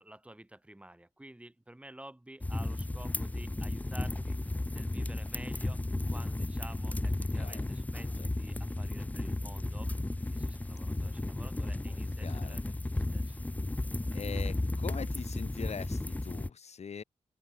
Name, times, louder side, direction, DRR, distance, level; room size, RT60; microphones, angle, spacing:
voice 1, 0.0-9.9 10.3-13.4, right 1 dB, 10° right, 6.4 m, -51 dB
sound 1, 2.4-16.5, left 2 dB, 15° left, 0.7 m, -34 dB
voice 2, 7.3-7.7 8.2-8.3 12.2-12.6 14.1-17.0, left 6 dB, 70° left, 5.7 m, -42 dB
open air
wide cardioid pair, 125°, 11 cm